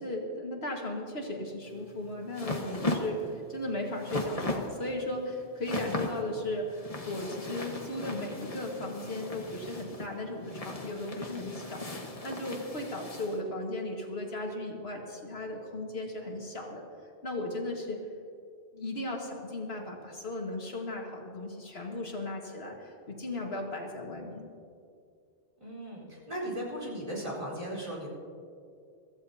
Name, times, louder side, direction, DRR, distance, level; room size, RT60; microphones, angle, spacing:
voice 1, 0.0-16.8 17.2-18.0 18.7-24.5, left 1 dB, 75° left, 0 dB, 2.0 m, -36 dB
sound 1, 1.7-13.4, left 2 dB, 35° left, 1.4 m, -37 dB
voice 2, 25.6-28.1, right 1 dB, 35° right, -3 dB, 4.4 m, -37 dB
24.0 x 14.5 x 2.8 m, 2.4 s
omnidirectional pair, 1.1 m